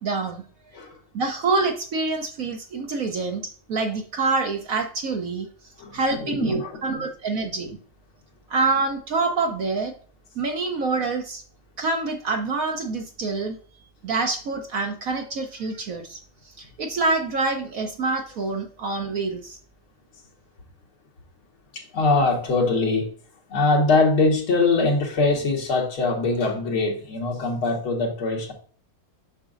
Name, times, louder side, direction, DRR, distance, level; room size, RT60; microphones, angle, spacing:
voice 1, 0.0-0.4 1.1-5.5 5.9-7.8 8.5-9.9 10.4-11.4 11.8-13.6 14.0-16.2 16.6-19.6, right 3 dB, 60° right, 4 dB, 1.0 m, -26 dB
voice 2, 5.8-7.0 21.7-23.1 23.5-28.5, left 3 dB, 80° left, -1 dB, 2.6 m, -22 dB
7.2 x 5.9 x 2.5 m, 0.43 s
omnidirectional pair, 2.3 m